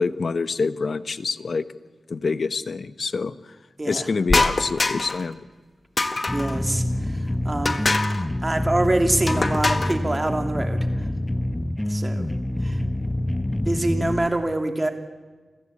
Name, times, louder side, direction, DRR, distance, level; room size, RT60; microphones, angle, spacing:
voice 1, 0.0-1.7 2.1-3.3 3.8-5.4, left 4 dB, 65° left, 14 dB, 1.0 m, -26 dB
sound 1, 4.3-5.3 6.0-6.6 7.6-8.2 9.3-10.0, left 2 dB, 40° left, 1.7 m, -23 dB
sound 2, 6.3-14.3, left 1 dB, 15° left, 1.2 m, -26 dB
voice 2, 6.3-6.8 7.4-7.8 8.4-10.9 11.9-12.3 12.6-12.8 13.7-14.9, right 2 dB, 30° right, 6 dB, 2.9 m, -24 dB
29.0 x 15.5 x 8.5 m, 1.4 s
cardioid pair, 55°, 0 cm